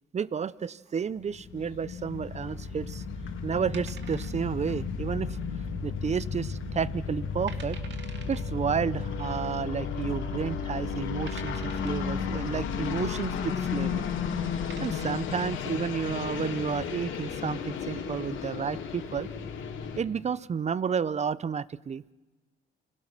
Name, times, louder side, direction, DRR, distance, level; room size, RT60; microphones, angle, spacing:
voice 1, 0.1-3.0 3.4-5.4 5.8-7.8 8.3-14.1 14.8-19.3 20.0-22.0, right 6 dB, 35° right, 19 dB, 0.6 m, -31 dB
sound 1, 1.2-20.0, left 6 dB, 80° left, 3.1 m, -33 dB
sound 2, 3.7-4.7 5.0-5.1 5.7-6.1 6.4-6.5 7.1-7.2 7.5-8.4 9.5-9.6 10.3-10.4 11.3-12.1 13.9-14.1 14.5-15.4, right 6 dB, 65° right, 2.2 m, -48 dB
30.0 x 21.0 x 6.1 m, 1.2 s
cardioid pair, 90°, 20 cm